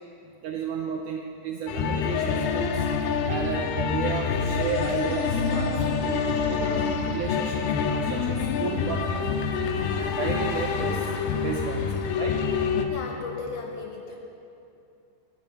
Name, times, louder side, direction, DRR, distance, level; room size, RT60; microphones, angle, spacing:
voice 1, 0.4-2.9 3.3-9.3 9.9-12.4, right 6 dB, 90° right, 2 dB, 1.8 m, -33 dB
sound 1, 1.7-12.9, left 6 dB, 90° left, 2.7 m, -26 dB
sound 2, 4.5-8.0, right 1 dB, 25° left, 4.6 m, -48 dB
voice 2, 12.9-14.2, left 4 dB, 70° left, 2 dB, 2.1 m, -36 dB
19.5 x 9.3 x 5.7 m, 2.7 s
omnidirectional pair, 4.4 m